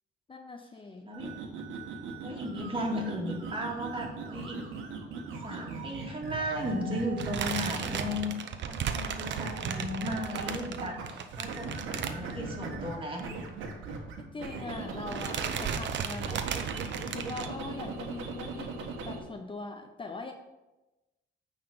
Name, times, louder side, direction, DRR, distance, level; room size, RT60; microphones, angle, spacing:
voice 1, 0.3-1.1 14.2-16.8 17.1-18.7 19.0-20.3, left 3 dB, 25° left, 5 dB, 0.7 m, -41 dB
sound 1, 1.1-8.3 9.3-11.0 11.3-15.8 16.1-19.2, right 4 dB, 90° right, 1.3 m, -39 dB
voice 2, 2.2-4.7 5.4-8.3 8.6-13.3 14.7-15.0, equal, 25° right, -1 dB, 2.1 m, -35 dB
sound 2, 7.2-12.7 13.0-13.2 13.5-13.6 14.5-14.8 15.1-17.5, right 7 dB, 65° right, 0.7 m, -35 dB
9.1 x 4.1 x 5.2 m, 1.0 s
cardioid pair, 90°, 20 cm